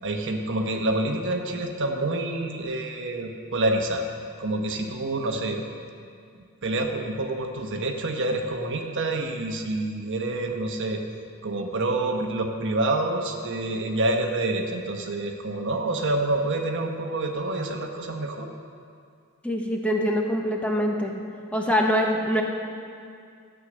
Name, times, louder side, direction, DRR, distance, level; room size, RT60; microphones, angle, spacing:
voice 1, 0.0-4.0 4.4-5.6 6.6-11.0 11.4-18.5, right 2 dB, 60° right, 3 dB, 1.1 m, -27 dB
voice 2, 19.4-21.1 21.5-22.4, equal, 5° left, 0 dB, 1.1 m, -24 dB
13.0 x 8.3 x 6.3 m, 2.3 s
head